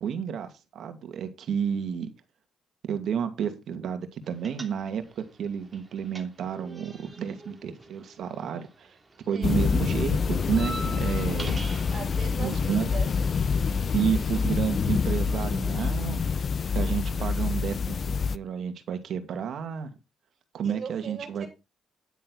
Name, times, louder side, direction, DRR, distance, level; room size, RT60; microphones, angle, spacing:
voice 1, 0.0-2.1 2.9-9.0 9.3-11.6 12.4-12.9 13.9-16.2 16.7-19.9 20.5-21.5, right 7 dB, 65° right, 2.3 m, -31 dB
sound 1, 4.4-5.2 5.5-8.9 9.1-12.0, right 1 dB, 20° right, 3.0 m, -42 dB
sound 2, 9.4-18.4, left 5 dB, 45° left, 0.5 m, -26 dB
voice 2, 11.9-13.1 20.6-21.5, right 6 dB, 45° right, 5.4 m, -39 dB
10.5 x 9.5 x 4.1 m
cardioid pair, 90°, 0 cm